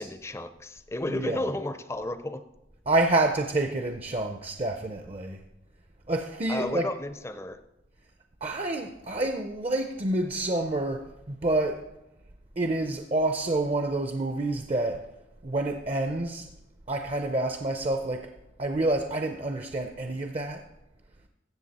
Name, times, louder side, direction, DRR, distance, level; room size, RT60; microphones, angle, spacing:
voice 1, 0.0-2.5 6.5-7.6, left 1 dB, 15° left, 0.5 m, -33 dB
voice 2, 1.0-1.5 2.9-5.4 6.1-6.9 8.4-11.8 12.6-15.1 15.4-16.5 16.9-18.3 18.6-20.6, right 2 dB, 35° right, 0.5 m, -28 dB
15.0 x 7.2 x 4.1 m
head